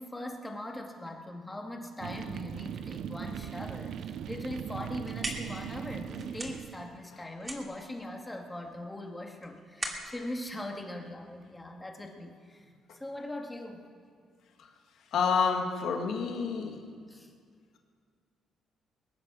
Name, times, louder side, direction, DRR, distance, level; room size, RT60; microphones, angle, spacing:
voice 1, 0.0-12.6 12.9-13.9 17.1-17.3, left 1 dB, 15° left, 2 dB, 2.2 m, -41 dB
sound 1, 2.0-7.0, right 9 dB, 75° right, 0.5 m, -39 dB
sound 2, 4.8-11.6, right 1 dB, 25° right, 2.6 m, -42 dB
voice 2, 15.1-16.8, left 5 dB, 75° left, 3 dB, 1.8 m, -28 dB
21.5 x 9.2 x 6.3 m, 2.1 s
cardioid pair, 90°, 0 cm